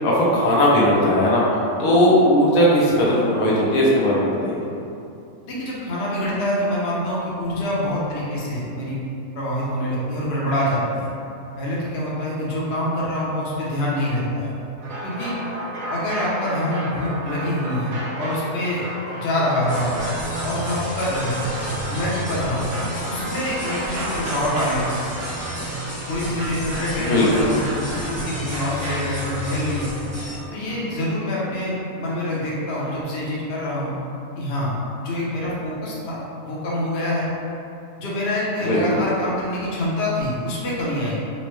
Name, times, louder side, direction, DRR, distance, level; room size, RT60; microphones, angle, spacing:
voice 1, 0.0-4.6 27.0-27.5 38.6-39.0, equal, 75° left, -5 dB, 1.1 m, -18 dB
voice 2, 5.5-9.0 9.3-11.1 11.6-14.5 15.0-15.3 15.9-18.8 19.1-20.1 20.4-21.5 21.9-22.7 23.1-25.2 26.1-29.9 30.5-33.9 34.4-37.3 38.0-41.1, left 1 dB, 55° left, -6 dB, 0.8 m, -25 dB
sound 1, 14.8-31.4 32.7-33.0, right 1 dB, 60° right, 0.5 m, -33 dB
sound 2, 19.7-30.4, equal, 25° right, 0.9 m, -32 dB
4.1 x 2.1 x 3.0 m, 2.6 s
omnidirectional pair, 1.5 m